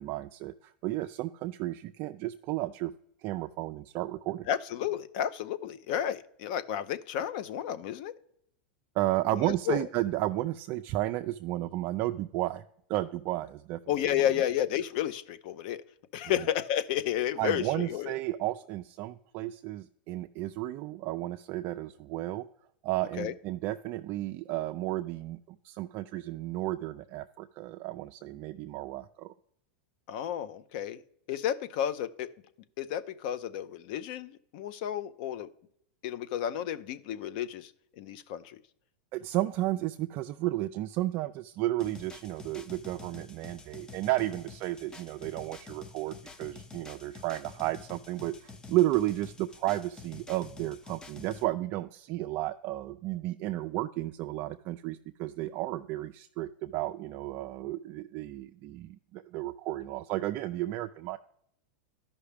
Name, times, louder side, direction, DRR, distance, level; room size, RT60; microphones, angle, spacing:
voice 1, 0.0-2.9 3.2-4.5 9.0-12.6 12.9-13.8 17.4-22.5 22.8-29.3 39.1-61.2, right 16 dB, 40° right, 7 dB, 0.3 m, -33 dB
voice 2, 4.5-8.1 9.4-9.8 13.9-15.8 16.1-18.1 23.2-23.3 30.1-31.0 31.3-32.3 32.8-35.5 36.0-37.7 38.0-38.6, left 10 dB, 55° left, 15 dB, 0.6 m, -32 dB
sound 1, 41.8-51.4, left 4 dB, 15° left, 0.5 m, -49 dB
13.0 x 5.5 x 3.4 m, 0.72 s
supercardioid pair, 140°, 6 cm